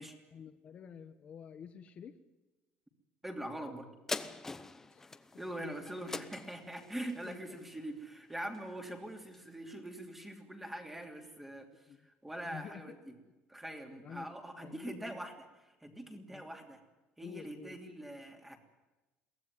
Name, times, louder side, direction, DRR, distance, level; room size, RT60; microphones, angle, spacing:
voice 1, 0.0-2.2 4.9-5.0 7.2-7.6 11.9-12.1 12.5-12.9 14.0-14.3 14.6-15.3 16.3-16.5 17.2-17.8, left 7 dB, 35° left, 8 dB, 1.2 m, -50 dB
voice 2, 3.2-3.9 5.4-11.7 12.0-13.1 13.5-15.5 15.8-16.8 17.2-18.6, right 1 dB, 5° right, 4 dB, 2.9 m, -43 dB
sound 1, 4.1-8.8 9.3-9.4, left 3 dB, 10° left, 0.9 m, -44 dB
23.0 x 17.0 x 9.6 m, 1.1 s
cardioid pair, 160°, 4 cm